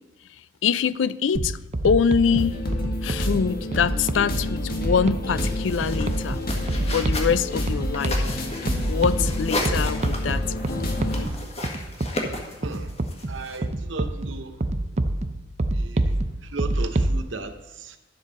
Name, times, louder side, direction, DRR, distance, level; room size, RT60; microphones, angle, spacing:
voice 1, 0.6-1.6 1.8-2.6 3.0-6.4 6.8-8.5 8.9-10.9, left 6 dB, 85° left, 0.4 m, -24 dB
sound 1, 1.3-17.2, right 1 dB, 40° right, 0.6 m, -28 dB
sound 2, 2.2-11.3, left 1 dB, 55° left, 1.6 m, -29 dB
sound 3, 5.4-13.6, left 1 dB, 35° left, 1.5 m, -34 dB
voice 2, 12.6-13.0 13.3-14.6 15.7-18.0, right 3 dB, 90° right, 0.9 m, -36 dB
12.0 x 7.5 x 4.0 m
head